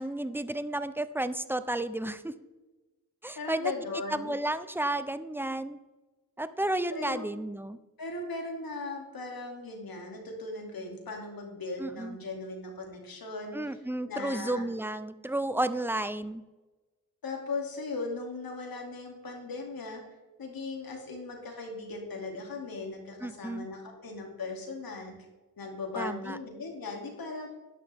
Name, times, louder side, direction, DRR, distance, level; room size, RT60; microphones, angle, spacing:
voice 1, 0.0-2.3 3.2-3.7 4.1-5.8 6.4-7.8 11.8-12.2 13.5-16.4 23.2-23.7 26.0-26.4, right 1 dB, 5° right, 12 dB, 0.4 m, -32 dB
voice 2, 3.4-4.4 6.9-7.3 8.0-13.8 14.1-14.7 17.2-20.0 20.4-25.1 25.6-27.5, left 3 dB, 80° left, 1 dB, 2.6 m, -38 dB
11.0 x 11.0 x 3.5 m, 1.1 s
wide cardioid pair, 155°, 36 cm